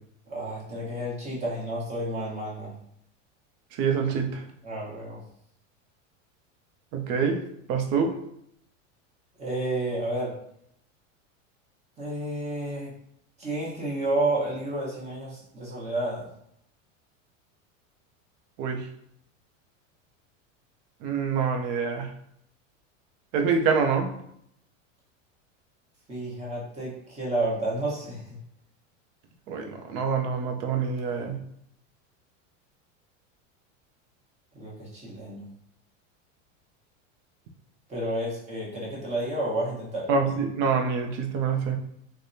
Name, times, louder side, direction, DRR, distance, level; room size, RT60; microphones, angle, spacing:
voice 1, 0.3-2.7 4.6-5.2 9.4-10.3 12.0-12.9 13.4-16.3 26.1-28.4 34.5-35.5 37.9-40.1, right 1 dB, 15° right, -5 dB, 1.1 m, -30 dB
voice 2, 3.8-4.4 6.9-7.4 7.7-8.2 18.6-18.9 21.0-22.1 23.3-24.1 29.5-31.4 40.1-41.8, right 5 dB, 50° right, 4 dB, 0.6 m, -26 dB
3.4 x 2.2 x 2.7 m, 0.71 s
supercardioid pair, 115°, 39 cm